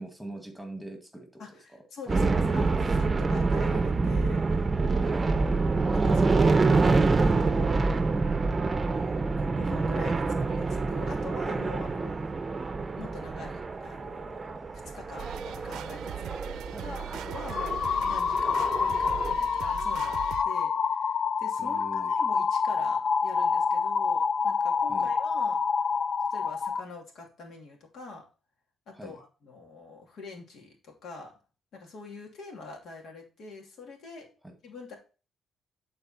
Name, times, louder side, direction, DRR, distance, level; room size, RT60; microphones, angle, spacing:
voice 1, 0.0-1.8 5.0-5.4 16.7-17.0 21.6-22.1 24.9-25.1 28.9-29.2 34.4-34.5, right 1 dB, ahead, 4 dB, 1.9 m, -43 dB
voice 2, 1.4-4.4 5.4-6.5 7.2-8.3 9.4-12.2 13.0-14.5 14.8-25.6 26.3-28.3 28.9-31.3 31.7-34.3 34.6-35.0, left 3 dB, 70° left, 1 dB, 2.6 m, -45 dB
sound 1, 2.1-19.3, right 3 dB, 30° right, 0.7 m, -27 dB
sound 2, 15.2-20.4, right 10 dB, 85° right, 0.5 m, -40 dB
sound 3, 17.5-26.8, left 5 dB, 50° left, 0.4 m, -27 dB
10.5 x 4.2 x 4.3 m, 0.34 s
cardioid pair, 90°, 0 cm